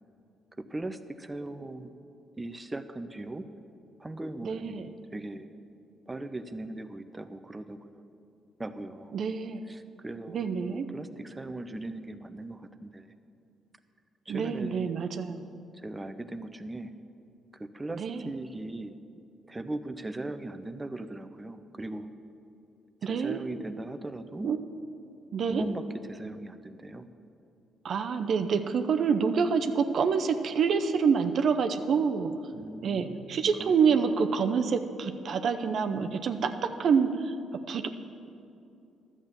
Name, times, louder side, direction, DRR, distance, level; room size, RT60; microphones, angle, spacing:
voice 1, 0.6-1.9 2.4-3.5 4.0-5.5 6.1-8.0 8.6-9.2 9.7-13.1 14.3-14.9 15.7-16.9 17.5-19.0 19.5-22.1 23.0-24.5 25.5-27.1 32.5-34.2, right 2 dB, 20° right, 9 dB, 0.6 m, -39 dB
voice 2, 4.4-4.9 9.1-9.6 10.3-10.8 14.3-15.4 18.0-18.2 23.0-23.4 24.4-24.6 25.3-25.6 27.8-32.3 32.8-36.5 36.8-37.3 37.7-37.9, right 6 dB, 60° right, 7 dB, 0.6 m, -27 dB
11.5 x 7.4 x 6.7 m, 2.6 s
supercardioid pair, 60°, 0 cm